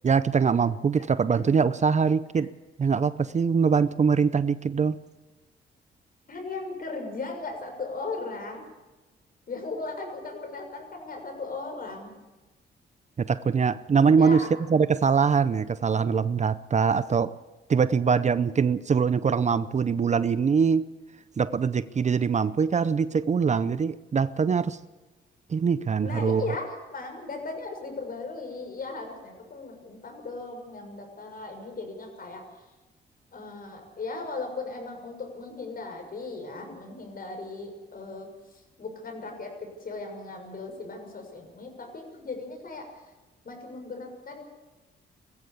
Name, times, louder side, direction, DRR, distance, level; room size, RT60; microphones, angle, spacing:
voice 1, 0.0-2.5 2.8-5.0 13.2-17.4 17.7-20.9 21.4-24.8 25.5-26.4, right 6 dB, 40° right, 15 dB, 0.7 m, -23 dB
voice 2, 6.3-8.6 9.5-12.1 14.2-14.5 26.0-26.6 26.9-32.4 33.3-38.3 38.8-43.0 43.4-44.4, left 3 dB, 50° left, 4 dB, 6.7 m, -37 dB
20.5 x 15.0 x 8.5 m, 1.1 s
cardioid pair, 85°, 19 cm